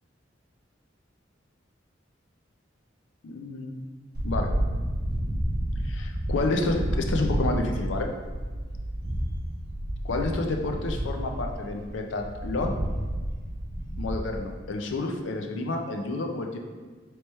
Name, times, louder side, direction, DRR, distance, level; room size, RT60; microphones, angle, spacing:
voice 1, 3.2-3.9 4.2-4.5 5.8-8.1 10.0-12.7 14.0-16.6, left 2 dB, 80° left, 3 dB, 0.5 m, -29 dB
sound 1, 4.1-14.4, equal, 55° right, 0.7 m, -30 dB
3.3 x 3.0 x 4.1 m, 1.4 s
head